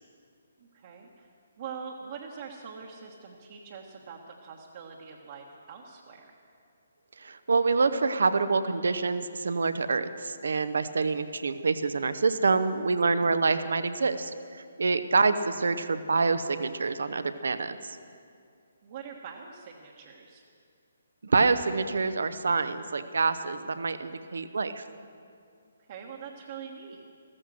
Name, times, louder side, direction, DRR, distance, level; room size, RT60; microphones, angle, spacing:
voice 1, 0.6-1.3 1.6-6.3 18.8-20.4 25.9-27.0, right 6 dB, 45° right, -1 dB, 1.3 m, -43 dB
voice 2, 7.2-14.3 14.8-18.0 21.2-24.8, right 4 dB, 65° right, 12 dB, 0.8 m, -26 dB
14.5 x 14.0 x 6.2 m, 2.4 s
figure-of-eight pair, 135°, 0 cm